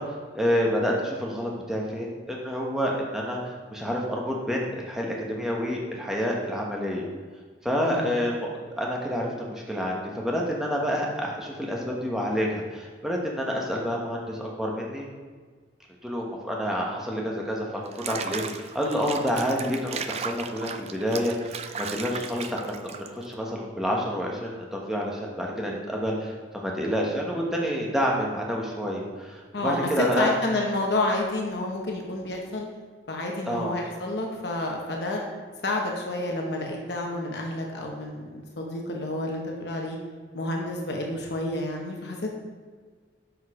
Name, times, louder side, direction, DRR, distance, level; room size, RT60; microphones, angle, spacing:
voice 1, 0.0-7.1 7.6-8.5 8.8-15.1 16.0-30.4 33.5-33.7, equal, 5° right, -2 dB, 1.0 m, -28 dB
voice 2, 7.8-8.2 29.5-32.7 33.1-35.2 35.6-40.0 40.3-42.3, left 2 dB, 60° left, 0 dB, 0.9 m, -29 dB
Water / Bathtub (filling or washing), 17.9-23.3, right 6 dB, 35° right, 0.3 m, -36 dB
6.2 x 5.3 x 4.8 m, 1.6 s
head